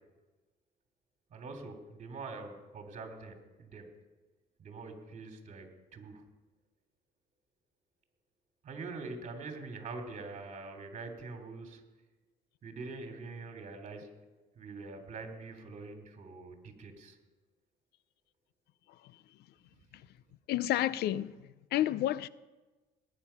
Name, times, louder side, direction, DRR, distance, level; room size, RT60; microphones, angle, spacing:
voice 1, 1.3-3.9 4.6-6.2 8.6-11.8 12.6-14.1 14.6-17.2, right 3 dB, 45° right, 2.8 m, -44 dB
voice 2, 20.5-21.3 21.7-22.3, left 13 dB, 75° left, 0.6 m, -29 dB
19.0 x 9.4 x 5.7 m
cardioid pair, 110°, 17 cm